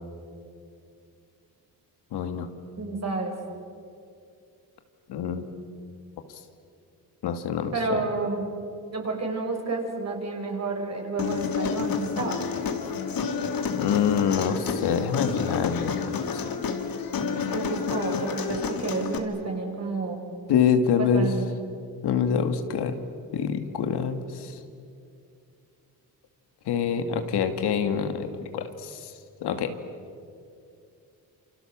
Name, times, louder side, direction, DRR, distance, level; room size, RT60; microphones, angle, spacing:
voice 1, 2.1-2.5 5.1-5.5 7.2-8.0 13.7-16.4 20.5-21.3 22.0-23.0 23.3-24.6 26.7-28.3 28.5-29.1 29.4-29.7, left 7 dB, 85° left, 7 dB, 2.2 m, -26 dB
voice 2, 2.8-3.3 7.7-8.5 8.9-12.4 17.3-20.2 21.0-21.5, right 3 dB, 40° right, 2 dB, 6.4 m, -30 dB
Human voice, 11.2-19.2, left 6 dB, 60° left, 2.6 m, -29 dB
28.5 x 27.0 x 7.5 m, 2.4 s
cardioid pair, 95°, 39 cm